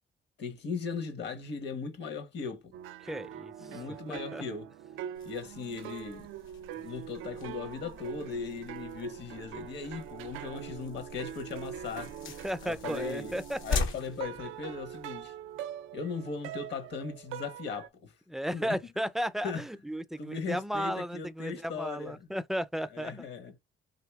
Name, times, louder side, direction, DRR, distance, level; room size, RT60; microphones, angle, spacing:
voice 1, 0.4-2.7 3.6-4.7 5.2-6.3 6.8-12.1 12.6-13.3 13.6-15.3 15.9-18.1 18.5-18.7 19.4-19.6 20.2-22.2 22.9-23.5, left 5 dB, 60° left, 1.2 m, -38 dB
sound 1, 2.7-17.9, right 10 dB, 85° right, 0.4 m, -43 dB
voice 2, 3.0-4.4 12.2-13.8 18.3-23.2, equal, ahead, 0.3 m, -35 dB
sound 2, 5.1-15.3, left 3 dB, 80° left, 1.1 m, -41 dB
2.8 x 2.8 x 3.5 m
cardioid pair, 90°, 20 cm